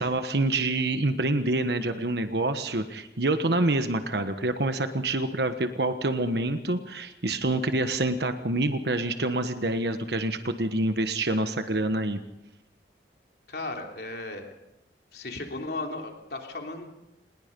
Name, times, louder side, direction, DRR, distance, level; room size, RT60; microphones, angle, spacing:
voice 1, 0.0-12.2, right 2 dB, 70° right, 8 dB, 1.3 m, -27 dB
voice 2, 13.5-14.5 15.1-16.9, left 2 dB, 65° left, 2 dB, 3.1 m, -35 dB
28.0 x 20.5 x 5.3 m, 0.91 s
head